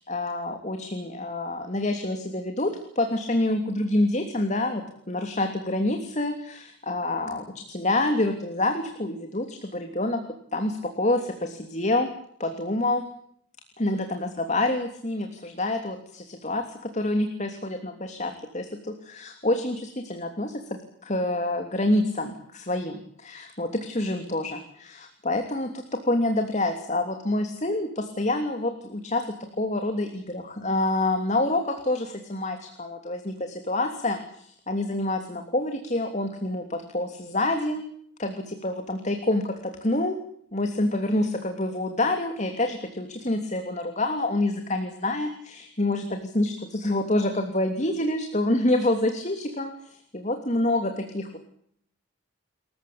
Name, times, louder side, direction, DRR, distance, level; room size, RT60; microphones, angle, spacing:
voice 1, 0.0-10.2 10.5-12.1 12.4-13.0 13.8-25.7 26.0-37.9 38.2-40.1 40.5-51.4, left 1 dB, 35° left, 6 dB, 3.1 m, -27 dB
29.5 x 15.0 x 8.7 m, 0.64 s
head